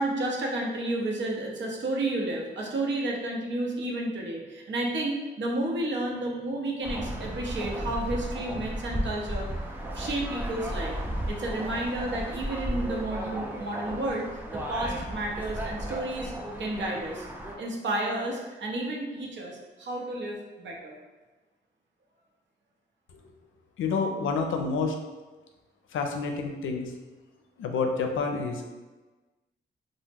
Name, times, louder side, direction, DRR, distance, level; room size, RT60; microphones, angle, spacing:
voice 1, 0.0-9.5 9.9-11.0 11.3-14.3 14.5-16.3 16.6-17.3 17.6-21.0, right 1 dB, 70° right, -1 dB, 0.6 m, -31 dB
sound 1, 6.8-17.6, right 1 dB, 10° right, 0.4 m, -34 dB
voice 2, 23.8-25.0 25.9-26.9 27.6-28.7, left 4 dB, 85° left, 4 dB, 0.4 m, -29 dB
2.9 x 2.0 x 3.4 m, 1.2 s
cardioid pair, 80°, 20 cm